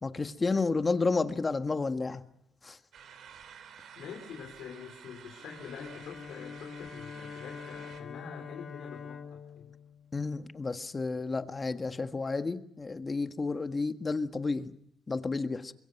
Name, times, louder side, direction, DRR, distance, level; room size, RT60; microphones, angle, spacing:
voice 1, 0.0-2.2 2.6-2.8 10.1-14.7 15.1-15.7, left 3 dB, 30° left, 1.6 m, -31 dB
sound 1, 2.9-8.0, right 7 dB, 70° right, 3.7 m, -51 dB
voice 2, 4.0-9.7, left 7 dB, 80° left, 3.6 m, -46 dB
Bowed string instrument, 5.4-10.9, left 6 dB, 50° left, 3.5 m, -45 dB
25.0 x 22.0 x 5.4 m
cardioid pair, 90°, 0 cm